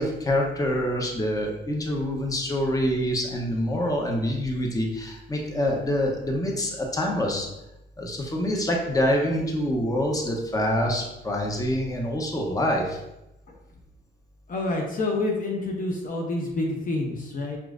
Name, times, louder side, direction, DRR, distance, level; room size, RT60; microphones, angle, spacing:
voice 1, 0.0-7.5 8.0-13.0, equal, 15° left, 0 dB, 0.8 m, -26 dB
voice 2, 14.5-17.6, left 2 dB, 45° left, 0 dB, 0.8 m, -28 dB
5.8 x 3.0 x 2.5 m, 0.91 s
cardioid pair, 90°, 20 cm